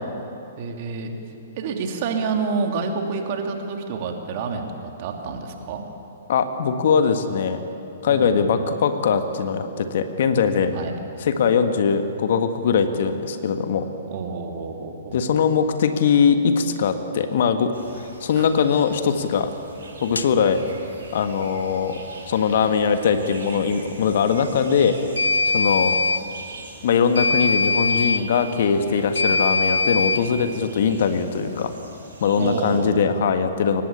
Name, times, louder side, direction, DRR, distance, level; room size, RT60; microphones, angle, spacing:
voice 1, 0.6-1.1 1.6-5.9 8.1-8.4 10.7-11.0 14.1-15.2 18.3-18.5 32.4-33.1, right 4 dB, 45° right, 3 dB, 2.9 m, -28 dB
voice 2, 6.3-7.6 8.0-10.7 11.2-13.9 15.1-17.7 18.2-19.5 20.0-20.6 21.1-22.0 22.3-25.0 25.5-26.0 26.8-31.7 32.2-33.8, left 6 dB, 55° left, 8 dB, 1.7 m, -21 dB
sound 1, 17.7-32.8, right 1 dB, 65° right, 7.9 m, -43 dB
sound 2, 20.2-20.3 25.2-26.2 27.1-28.2 29.1-30.2, left 3 dB, 80° left, 0.9 m, -21 dB
23.5 x 19.5 x 8.6 m, 2.8 s
figure-of-eight pair, 115°, 0 cm